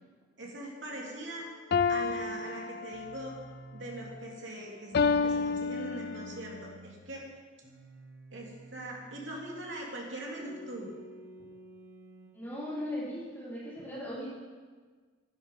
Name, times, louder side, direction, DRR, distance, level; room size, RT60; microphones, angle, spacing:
voice 1, 0.4-1.5 1.9-3.3 3.7-7.2 8.3-10.9, right 1 dB, 65° right, -2 dB, 2.8 m, -41 dB
sound 1, 1.7-3.3 4.9-6.4, left 5 dB, 55° left, 0.4 m, -29 dB
sound 2, 2.9-4.2 4.9-7.0 7.6-9.6 10.4-12.4, right 1 dB, 20° right, 2.5 m, -50 dB
voice 2, 12.3-14.3, left 1 dB, 10° left, -9 dB, 4.1 m, -38 dB
11.0 x 9.8 x 5.4 m, 1.5 s
head